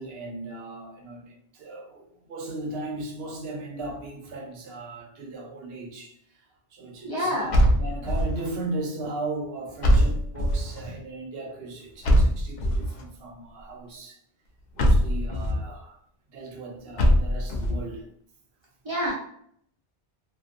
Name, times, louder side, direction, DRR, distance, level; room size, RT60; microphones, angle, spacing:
voice 1, 0.0-6.5 6.7-14.2 14.7-16.0 16.3-18.1, right 2 dB, 65° right, 0.8 m, -37 dB
voice 2, 7.0-7.5 18.8-19.2, equal, 35° right, 0.5 m, -27 dB
sound 1, 7.5-8.5 9.8-10.8 12.0-13.0 14.8-15.6 17.0-17.8, equal, 55° left, 0.5 m, -21 dB
2.6 x 2.4 x 2.4 m
omnidirectional pair, 1.1 m